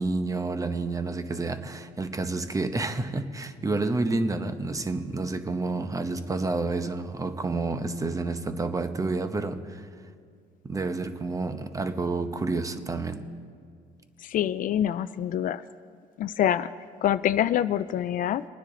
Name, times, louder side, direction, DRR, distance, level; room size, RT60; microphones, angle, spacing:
voice 1, 0.0-9.9 10.6-13.2, right 3 dB, 20° right, 0.8 m, -29 dB
voice 2, 14.2-15.6 16.2-16.7 17.0-18.5, left 11 dB, 55° left, 0.4 m, -25 dB
24.0 x 9.8 x 3.8 m
cardioid pair, 110°, 17 cm